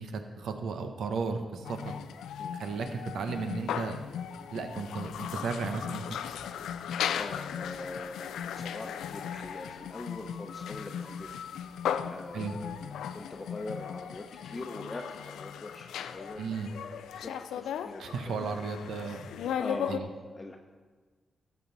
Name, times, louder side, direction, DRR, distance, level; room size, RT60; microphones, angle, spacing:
voice 1, 0.0-1.8 2.5-4.0 4.5-6.2 12.3-12.6 16.4-16.7 18.0-19.2 19.9-20.1, right 5 dB, 80° right, 7 dB, 0.9 m, -34 dB
sound 1, 1.6-20.0, left 8 dB, 85° left, 0.3 m, -37 dB
voice 2, 7.2-11.4 11.7-18.4 19.6-20.6, left 2 dB, 35° left, 1 dB, 0.9 m, -43 dB
13.5 x 7.6 x 4.0 m, 1.4 s
supercardioid pair, 45°, 0 cm